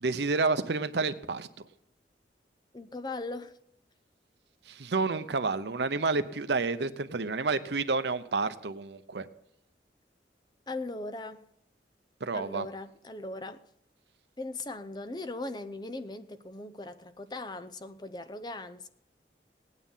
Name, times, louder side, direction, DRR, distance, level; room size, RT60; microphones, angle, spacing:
voice 1, 0.0-1.5 4.7-9.3 12.2-12.7, right 4 dB, 75° right, 0.8 m, -29 dB
voice 2, 2.7-3.6 10.7-11.4 12.3-13.6 14.4-18.9, left 2 dB, 25° left, 0.6 m, -39 dB
17.5 x 9.4 x 5.6 m
head